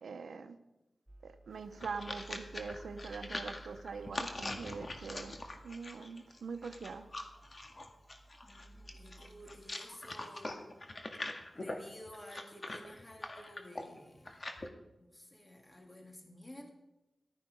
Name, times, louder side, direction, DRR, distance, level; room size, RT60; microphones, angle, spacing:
voice 1, 0.0-0.6 1.2-7.1, right 5 dB, 85° right, 8 dB, 0.8 m, -43 dB
sound 1, 1.1-9.7, right 2 dB, 15° right, 1.3 m, -56 dB
sound 2, 1.5-14.7, left 2 dB, 45° left, 2.0 m, -43 dB
voice 2, 8.4-10.6 11.5-14.5 15.0-16.7, left 1 dB, 30° left, 2 dB, 2.9 m, -53 dB
15.0 x 12.5 x 5.3 m, 0.97 s
cardioid pair, 45°, 0 cm